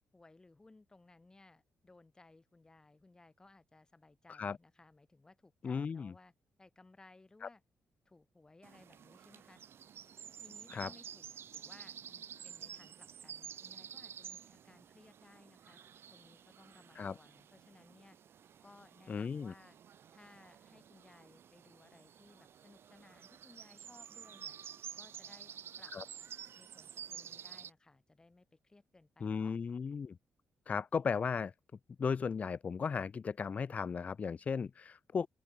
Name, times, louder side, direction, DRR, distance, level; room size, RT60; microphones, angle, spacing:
voice 1, 0.1-6.3 6.6-7.6 8.1-9.6 10.4-15.8 16.1-18.2 18.6-19.8 20.1-24.6 25.0-25.5 25.8-25.9 26.5-29.5, left 2 dB, 15° left, 5.5 m, -61 dB
voice 2, 5.6-6.1 7.4-7.5 10.7-10.9 17.0-17.1 19.1-19.5 25.9-26.0 29.2-30.2 30.7-31.5 32.0-35.3, left 6 dB, 30° left, 0.3 m, -36 dB
sound 1, 8.6-27.7, right 9 dB, 55° right, 1.8 m, -51 dB
open air
wide cardioid pair, 155°, 5 cm